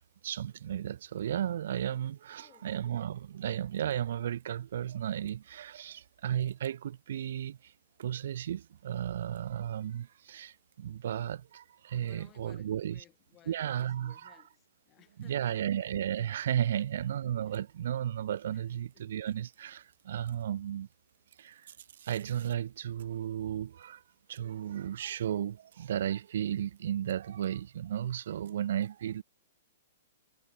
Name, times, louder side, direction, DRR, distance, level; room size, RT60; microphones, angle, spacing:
voice 1, 0.2-7.7 8.0-13.0 13.5-14.3 15.2-20.9 21.4-21.7 22.0-24.0 24.3-29.2, right 10 dB, 60° right, 0.4 m, -34 dB
voice 2, 2.4-2.7 12.0-15.9 16.3-17.1 17.4-17.7 18.5-19.0, left 13 dB, 25° left, 7.0 m, -61 dB
figure-of-eight pair, 115°, 0 cm